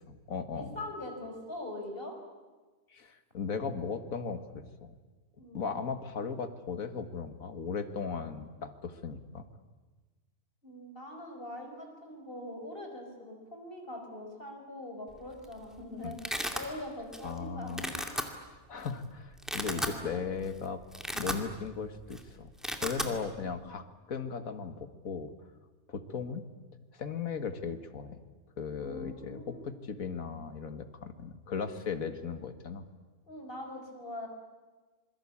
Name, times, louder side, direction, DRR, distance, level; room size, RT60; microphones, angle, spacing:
voice 1, 0.0-0.8 2.9-4.6 5.5-9.5 16.0-16.1 17.2-18.2 18.7-20.8 21.1-22.5 22.8-25.3 25.9-26.4 26.9-28.2 28.6-32.8, left 5 dB, 75° left, 9 dB, 2.1 m, -37 dB
voice 2, 0.5-2.2 5.4-5.8 10.6-18.1 19.7-20.2 28.8-29.7 33.3-34.3, left 1 dB, 40° left, 2 dB, 5.4 m, -43 dB
Domestic sounds home sounds, 15.2-15.5 15.8-16.7 17.1-17.4 17.7-18.2 18.9-19.0 19.3-20.0 20.4-20.5 20.8-21.8 22.0-22.2 22.5-23.1, equal, ahead, 2.3 m, -34 dB
27.0 x 22.5 x 8.6 m, 1.3 s
omnidirectional pair, 1.5 m